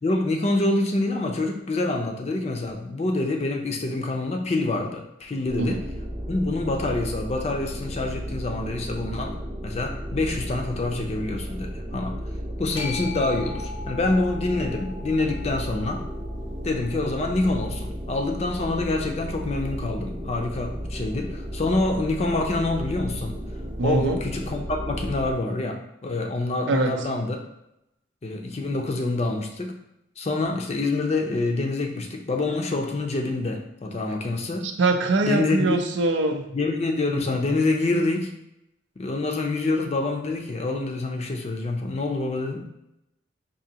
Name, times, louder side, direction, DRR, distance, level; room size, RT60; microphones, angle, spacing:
voice 1, 0.0-5.8 6.3-9.4 9.6-12.2 12.6-16.0 16.6-23.4 23.8-27.4 28.2-29.7 30.2-34.7 35.3-35.8 36.5-38.3 39.0-42.6, left 2 dB, 35° left, 3 dB, 0.5 m, -26 dB
sound 1, 5.5-25.3, equal, 25° right, 0.6 m, -34 dB
sound 2, 12.8-19.0, left 5 dB, 85° left, 1.0 m, -41 dB
voice 2, 23.8-24.2 26.7-26.9 34.6-36.5, right 2 dB, 80° right, 5 dB, 0.5 m, -23 dB
4.8 x 2.6 x 2.8 m, 0.84 s
head